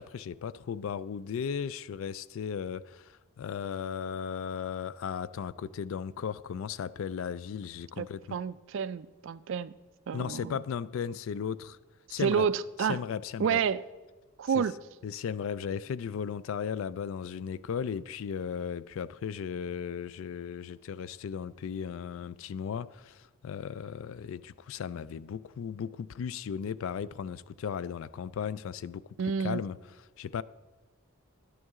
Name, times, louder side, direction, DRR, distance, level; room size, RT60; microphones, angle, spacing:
voice 1, 0.0-8.4 10.1-11.8 12.1-12.5 12.8-13.6 14.5-14.6 15.0-30.4, left 7 dB, 65° left, 0.3 m, -36 dB
voice 2, 8.3-9.7 10.1-10.5 12.2-13.0 13.4-13.8 14.4-14.7 29.2-29.6, right 7 dB, 60° right, 0.3 m, -29 dB
11.0 x 9.3 x 3.6 m
head